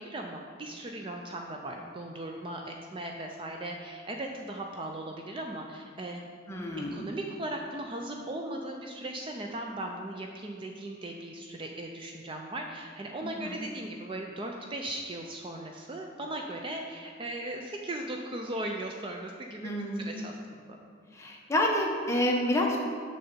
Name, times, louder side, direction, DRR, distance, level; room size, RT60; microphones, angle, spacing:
voice 1, 0.0-6.2 6.9-20.4 20.7-20.8, right 1 dB, 25° right, 2 dB, 0.4 m, -38 dB
voice 2, 6.5-7.1 13.2-13.6 19.6-20.2 21.1-22.8, left 1 dB, 15° left, -1 dB, 0.8 m, -29 dB
6.5 x 6.5 x 4.4 m, 2.1 s
head